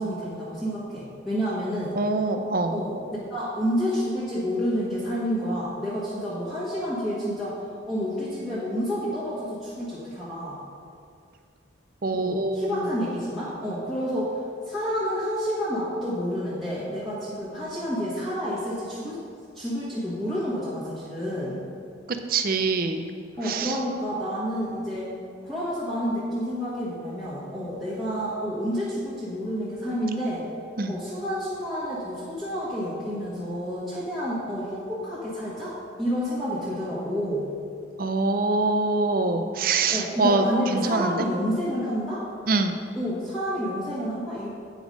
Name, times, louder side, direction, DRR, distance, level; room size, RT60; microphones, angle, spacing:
voice 1, 0.0-2.0 2.7-3.0 3.3-10.6 12.1-14.4 14.7-19.2 19.5-21.6 23.4-25.1 25.4-30.4 30.9-37.5 39.9-42.2 42.9-44.5, equal, ahead, -11 dB, 1.4 m, -29 dB
voice 2, 2.0-2.7 12.0-12.8 22.3-23.1 23.4-23.8 30.8-30.9 38.0-41.2 42.5-42.8, right 3 dB, 45° right, 7 dB, 0.5 m, -24 dB
8.9 x 5.1 x 5.2 m, 2.4 s
head